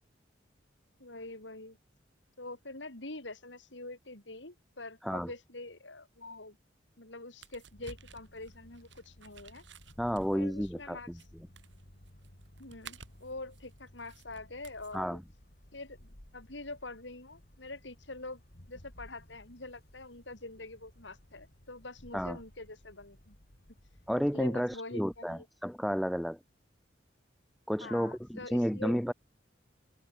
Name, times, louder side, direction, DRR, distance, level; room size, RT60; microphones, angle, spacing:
voice 1, 1.0-1.8 2.4-6.6 7.0-9.6 10.3-11.3 12.6-15.2 15.7-18.4 18.7-23.4 24.3-25.5 27.8-29.0, left 2 dB, 75° left, 5.3 m, -45 dB
sound 1, 7.4-15.0, right 5 dB, 75° right, 5.2 m, -54 dB
sound 2, 7.7-24.4, equal, 55° left, 3.8 m, -57 dB
voice 2, 10.0-11.0 14.9-15.2 22.1-22.4 24.1-26.4 27.7-29.1, equal, ahead, 0.4 m, -31 dB
head